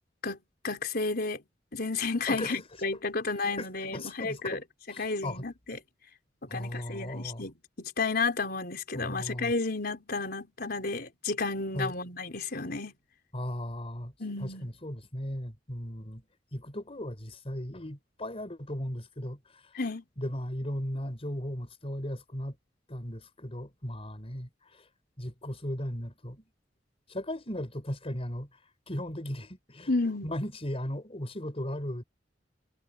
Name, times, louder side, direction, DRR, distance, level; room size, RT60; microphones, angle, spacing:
voice 1, 0.2-1.4 1.7-4.6 4.9-5.8 6.5-12.9 14.2-14.7 19.8-20.0 29.9-30.3, left 3 dB, 60° left, 4.5 m, -32 dB
voice 2, 2.3-2.6 3.6-4.6 4.9-5.4 6.5-7.5 9.0-9.5 11.7-11.9 13.3-14.1 14.4-16.2 16.5-19.4 20.2-22.6 22.9-24.8 25.2-26.4 27.1-28.5 28.9-29.9 30.2-32.0, left 1 dB, 35° left, 5.1 m, -36 dB
head